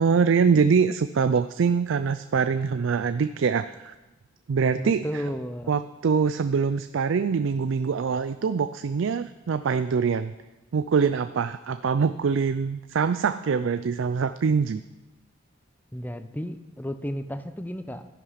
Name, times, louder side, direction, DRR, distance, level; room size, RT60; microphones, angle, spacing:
voice 1, 0.0-3.9 4.5-5.2 5.7-10.3 10.7-14.8, right 5 dB, 65° right, 12 dB, 0.4 m, -24 dB
voice 2, 4.8-5.7 15.9-18.1, equal, 10° left, 10 dB, 0.6 m, -33 dB
13.0 x 10.5 x 5.7 m, 1.1 s
head